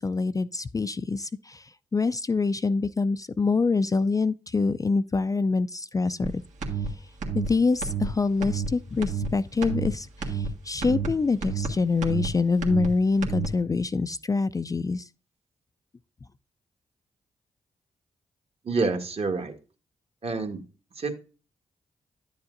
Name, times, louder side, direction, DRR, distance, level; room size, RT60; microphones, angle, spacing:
voice 1, 0.0-6.4 7.3-15.1, left 4 dB, 25° left, 0.4 m, -25 dB
sound 1, 6.2-6.3 6.6-6.9 7.2-7.5 7.8-8.1 8.4-8.7 9.0-9.3 9.6-9.9 10.2-10.5 10.8-11.1 11.4-11.7 12.0-12.3 12.6-12.9 13.2-13.5, right 6 dB, 65° right, 1.5 m, -29 dB
voice 2, 18.6-19.5 20.2-20.6 21.0-21.1, right 3 dB, 50° right, 1.5 m, -27 dB
11.0 x 7.1 x 2.6 m
hypercardioid pair, 40°, 13 cm